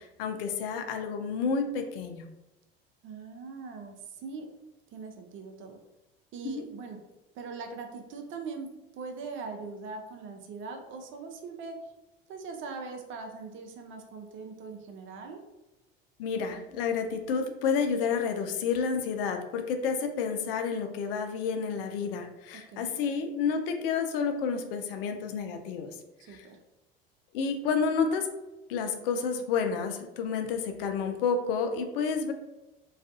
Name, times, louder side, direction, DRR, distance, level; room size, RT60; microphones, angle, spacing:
voice 1, 0.0-2.2 6.4-6.6 16.2-25.9 26.3-26.5 27.3-28.3 28.7-32.3, left 5 dB, 70° left, 6 dB, 0.4 m, -30 dB
voice 2, 3.0-4.5 4.9-5.8 6.3-7.0 7.3-8.7 8.9-11.9 12.3-15.4 22.5-23.0 26.3-26.6, right 4 dB, 45° right, 3 dB, 0.5 m, -41 dB
2.4 x 2.3 x 2.4 m, 1.0 s
hypercardioid pair, 70°, 29 cm